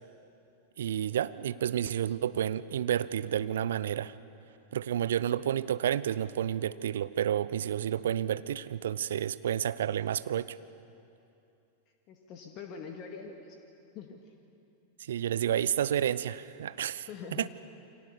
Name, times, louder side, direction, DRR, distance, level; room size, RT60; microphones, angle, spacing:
voice 1, 0.8-4.1 4.7-10.6 15.0-17.5, right 10 dB, 60° right, 16 dB, 0.7 m, -30 dB
voice 2, 12.1-13.6 13.9-14.2 17.1-17.5, left 6 dB, 35° left, 3 dB, 2.0 m, -43 dB
28.5 x 24.5 x 7.0 m, 2.7 s
figure-of-eight pair, 90°, 0 cm